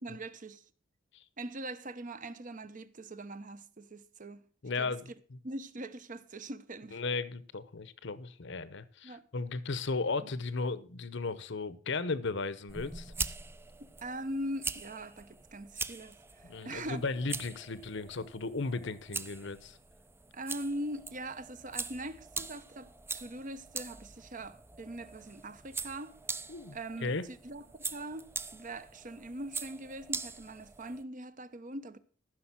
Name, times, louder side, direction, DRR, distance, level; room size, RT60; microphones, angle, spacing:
voice 1, 0.0-0.6 1.4-4.4 4.8-4.9 5.4-7.0 9.0-9.2 10.2-10.3 13.8-17.0 20.3-26.2 26.7-32.0, right 1 dB, 40° right, 0.9 m, -42 dB
voice 2, 4.6-5.4 6.9-13.1 16.4-19.8 26.5-27.2, left 3 dB, 65° left, 0.9 m, -36 dB
sound 1, 12.7-31.0, right 4 dB, 10° right, 0.5 m, -43 dB
14.5 x 6.4 x 6.1 m
head